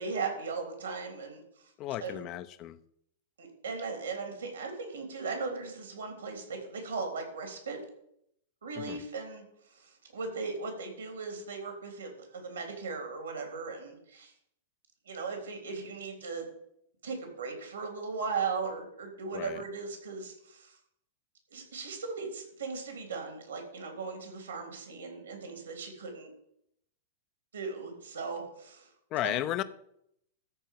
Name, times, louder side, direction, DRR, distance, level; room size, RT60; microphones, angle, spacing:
voice 1, 0.0-1.4 2.0-2.2 3.4-7.8 8.6-9.4 9.8-14.3 15.1-16.5 17.0-20.7 21.5-26.3 27.5-28.9 29.2-29.4, right 4 dB, 75° right, 3 dB, 3.3 m, -37 dB
voice 2, 1.8-2.8 8.7-9.1 19.3-19.6 29.1-29.6, left 13 dB, 40° left, 14 dB, 0.6 m, -34 dB
13.5 x 4.6 x 7.6 m, 0.75 s
figure-of-eight pair, 100°, 0 cm